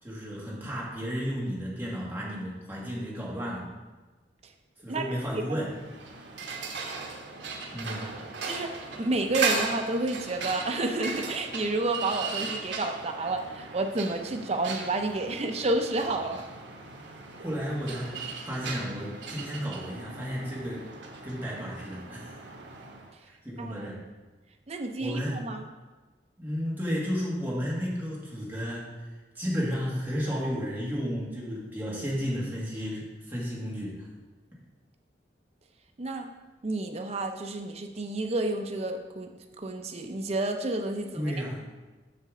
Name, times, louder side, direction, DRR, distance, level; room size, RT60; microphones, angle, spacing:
voice 1, 0.0-3.7 4.8-5.7 7.7-8.1 17.4-18.1 18.4-20.9 21.2-22.4 23.3-24.0 25.0-25.4 26.4-29.1 29.3-34.1 41.1-41.6, equal, 10° right, -6 dB, 1.6 m, -33 dB
sound 1, 5.7-23.1, right 4 dB, 80° right, 1.1 m, -37 dB
voice 2, 8.4-16.5 23.6-23.8 24.7-25.7 36.0-36.3 36.6-39.3 39.6-41.3, right 2 dB, 35° right, 4 dB, 0.6 m, -30 dB
6.7 x 6.6 x 3.7 m, 1.2 s
head